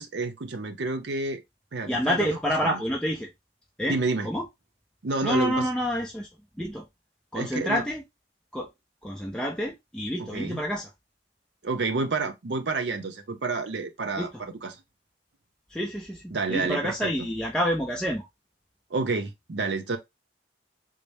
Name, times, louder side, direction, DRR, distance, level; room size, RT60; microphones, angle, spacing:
voice 1, 0.0-1.4 1.7-2.8 3.9-4.3 5.0-5.7 7.3-7.8 10.2-10.6 11.6-14.8 16.3-17.3 18.9-20.0, right 3 dB, 70° right, 0.6 m, -29 dB
voice 2, 1.8-3.3 3.8-4.0 4.2-4.4 5.2-6.3 6.6-6.8 7.3-8.0 8.5-8.7 9.0-10.9 14.2-14.4 15.7-18.2, equal, 5° left, 0.6 m, -28 dB
4.1 x 2.1 x 3.3 m
head